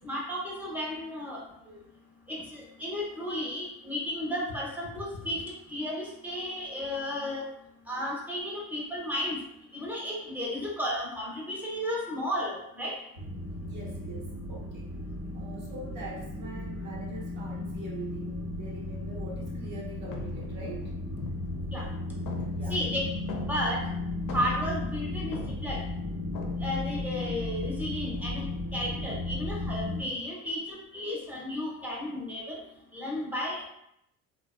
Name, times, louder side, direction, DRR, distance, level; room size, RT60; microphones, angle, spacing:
voice 1, 0.0-1.4 1.7-1.8 2.3-5.4 5.7-7.5 7.9-9.4 9.7-12.9 21.7-21.9 22.7-23.1 23.5-23.8 24.3-25.4 25.6-25.8 26.6-28.4 28.7-32.6 32.9-33.7, left 1 dB, 5° right, -4 dB, 0.7 m, -33 dB
sound 1, 13.2-30.0, left 2 dB, 80° right, 1.0 m, -35 dB
voice 2, 13.7-14.9 15.3-20.9 22.5-22.9, right 3 dB, 50° right, -4 dB, 0.6 m, -43 dB
sound 2, 19.5-19.8 20.1-21.9 22.3-23.9 24.1-25.8 26.3-26.7, left 5 dB, 55° left, 0.5 m, -42 dB
2.4 x 2.2 x 2.3 m, 0.79 s
supercardioid pair, 90°, 39 cm